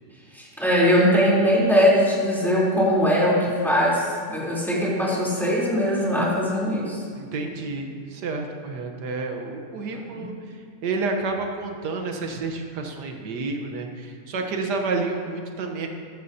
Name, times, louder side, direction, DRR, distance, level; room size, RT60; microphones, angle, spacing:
voice 1, 0.3-7.0 9.9-10.2, equal, ahead, -7 dB, 3.4 m, -21 dB
voice 2, 7.2-10.3 10.8-15.9, right 3 dB, 90° right, 3 dB, 1.7 m, -29 dB
14.5 x 14.0 x 2.8 m, 2.2 s
omnidirectional pair, 1.7 m